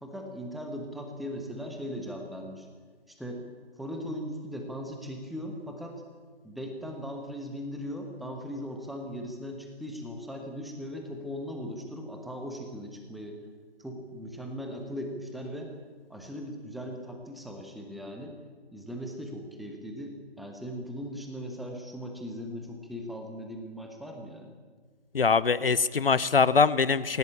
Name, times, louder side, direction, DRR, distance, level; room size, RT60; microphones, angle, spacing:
voice 1, 0.0-2.7 3.1-3.4 3.8-6.0 6.4-13.4 13.8-15.7 16.1-18.4 18.7-24.5, equal, ahead, 3 dB, 1.2 m, -39 dB
voice 2, 25.1-27.2, left 5 dB, 60° left, 17 dB, 0.9 m, -23 dB
25.0 x 16.5 x 8.5 m, 1.5 s
figure-of-eight pair, 145°, 31 cm